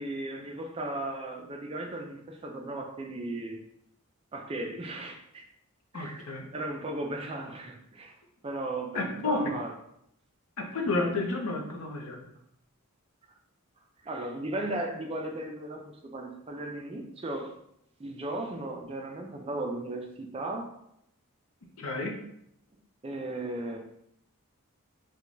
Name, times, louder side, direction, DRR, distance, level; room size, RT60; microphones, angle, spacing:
voice 1, 0.0-3.6 4.3-5.4 5.9-8.2 8.4-9.7 14.0-17.5 18.0-20.7 23.0-23.8, right 2 dB, 25° right, 2 dB, 0.3 m, -36 dB
voice 2, 5.9-6.5 8.9-9.5 10.6-12.2 21.8-22.1, left 2 dB, 75° left, 2 dB, 0.6 m, -31 dB
4.6 x 2.2 x 2.6 m, 0.75 s
head